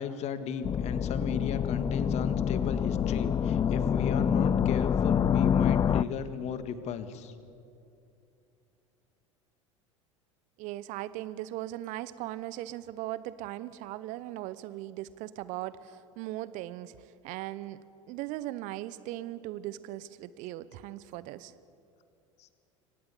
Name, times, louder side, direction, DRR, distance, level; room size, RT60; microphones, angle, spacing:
voice 1, 0.0-7.3 22.4-22.5, left 7 dB, 40° left, 12 dB, 1.6 m, -35 dB
sound 1, 0.6-6.0, left 8 dB, 25° left, 0.5 m, -26 dB
voice 2, 10.6-17.8 18.1-21.5, right 15 dB, 50° right, 17 dB, 0.9 m, -38 dB
25.0 x 17.5 x 8.4 m, 2.6 s
figure-of-eight pair, 75°, 17 cm